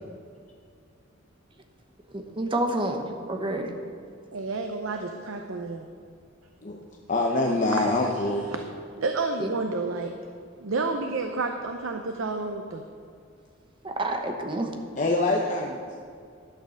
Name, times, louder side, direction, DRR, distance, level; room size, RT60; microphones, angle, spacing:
voice 1, 2.1-3.0 3.3-3.7 9.4-9.5 13.8-14.7, right 1 dB, 25° right, 4 dB, 1.0 m, -28 dB
voice 2, 4.3-5.9 7.7-8.1 9.0-10.1 10.6-12.8, right 3 dB, 80° right, 5 dB, 0.7 m, -30 dB
voice 3, 7.1-8.5 15.0-15.8, left 2 dB, 40° left, 0 dB, 0.7 m, -24 dB
11.5 x 6.6 x 6.4 m, 2.3 s
head